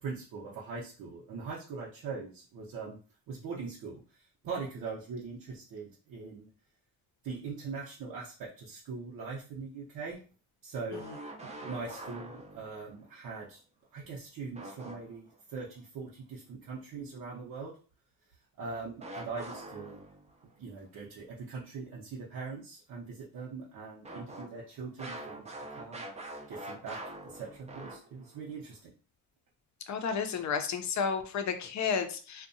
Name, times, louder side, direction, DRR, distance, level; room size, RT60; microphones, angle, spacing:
voice 1, 0.0-3.0 3.3-6.5 7.2-10.2 10.6-11.0 11.4-13.6 13.9-17.7 18.6-20.0 20.6-26.1 26.5-28.9, right 4 dB, 60° right, -3 dB, 0.7 m, -41 dB
sound 1, 10.9-12.9 14.5-15.4 19.0-20.4 24.0-28.4, right 1 dB, 20° right, 0.5 m, -44 dB
voice 2, 29.9-32.5, left 6 dB, 50° left, 7 dB, 0.5 m, -32 dB
2.6 x 2.2 x 2.6 m, 0.39 s
cardioid pair, 95°, 37 cm